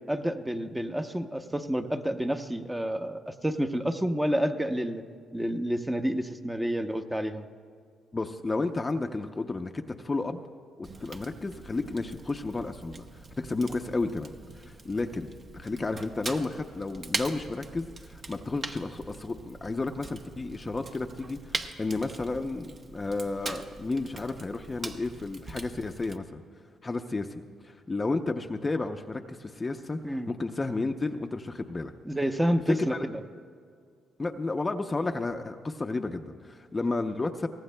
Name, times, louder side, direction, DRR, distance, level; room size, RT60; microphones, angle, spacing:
voice 1, 0.1-5.0 5.3-7.5 30.0-30.3 32.0-33.2, equal, 10° right, 6 dB, 0.8 m, -29 dB
voice 2, 8.1-10.4 10.8-26.4 26.8-30.0 30.3-31.9 32.7-33.0 34.2-37.5, left 3 dB, 25° left, 5 dB, 0.6 m, -32 dB
Fire, 10.8-26.2, right 3 dB, 40° right, 0.8 m, -42 dB
23.0 x 18.5 x 2.2 m, 2.1 s
cardioid pair, 90°, 0 cm